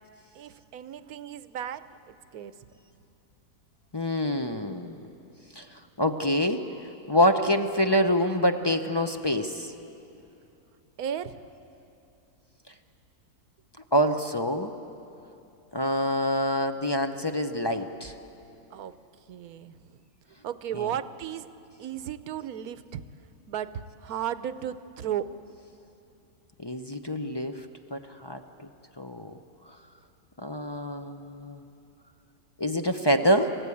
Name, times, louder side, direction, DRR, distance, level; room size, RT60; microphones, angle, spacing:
voice 1, 0.3-2.6 11.0-11.4 18.7-18.9 19.3-20.0 20.4-21.5 21.8-23.0 23.5-25.4, right 10 dB, 70° right, 13 dB, 1.2 m, -35 dB
voice 2, 3.9-5.0 5.6-5.7 6.0-6.6 7.1-9.7 13.9-14.7 15.7-18.1 20.7-20.9 26.6-27.6 27.9-28.7 29.0-29.3 30.4-31.6 32.6-33.5, equal, 30° left, 6 dB, 0.5 m, -26 dB
29.0 x 16.0 x 8.5 m, 2.8 s
omnidirectional pair, 1.7 m